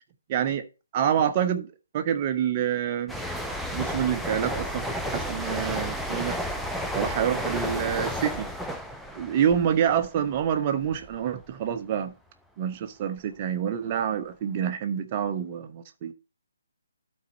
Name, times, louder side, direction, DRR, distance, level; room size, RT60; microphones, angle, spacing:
voice 1, 0.3-0.6 0.9-3.2 3.7-4.9 5.1-6.4 6.9-8.5 9.1-12.1 12.6-16.1, right 9 dB, 30° right, 1.0 m, -27 dB
sound 1, 3.1-10.6 10.9-11.2, equal, ahead, 0.6 m, -32 dB
12.0 x 4.5 x 4.3 m
figure-of-eight pair, 140°, 0 cm